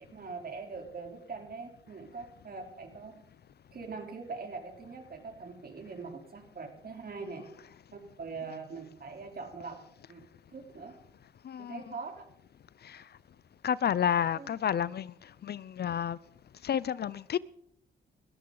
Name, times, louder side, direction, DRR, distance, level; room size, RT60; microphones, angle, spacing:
voice 1, 0.1-3.1 3.7-7.4 7.9-9.8 10.1-10.2 10.5-10.9 11.6-12.3 14.3-14.5, right 4 dB, 45° right, 3.6 m, -42 dB
voice 2, 11.4-11.8 12.8-13.0 13.6-15.1 15.4-16.2 16.6-17.4, left 9 dB, 50° left, 0.5 m, -30 dB
20.0 x 14.5 x 3.9 m
cardioid pair, 80°, 21 cm